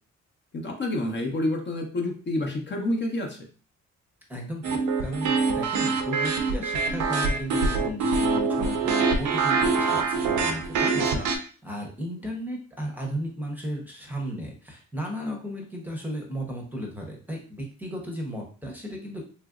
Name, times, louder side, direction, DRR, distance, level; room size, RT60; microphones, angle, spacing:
voice 1, 0.5-3.4 10.9-11.3, left 1 dB, 35° left, 1 dB, 0.8 m, -29 dB
voice 2, 4.3-19.2, equal, 5° right, -1 dB, 0.8 m, -35 dB
sound 1, 4.6-11.4, right 4 dB, 75° right, 0.6 m, -24 dB
3.0 x 2.5 x 2.4 m, 0.39 s
cardioid pair, 90°, 30 cm